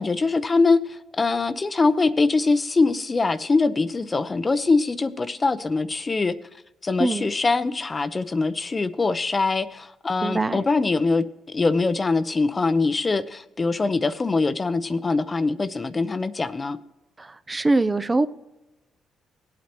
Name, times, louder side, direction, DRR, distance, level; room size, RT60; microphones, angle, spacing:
voice 1, 0.0-6.3 6.8-16.8, left 3 dB, 30° left, 13 dB, 0.6 m, -23 dB
voice 2, 10.2-10.6 17.2-18.3, right 2 dB, 20° right, 12 dB, 0.4 m, -22 dB
18.5 x 8.4 x 3.0 m, 0.97 s
cardioid pair, 90°, 0 cm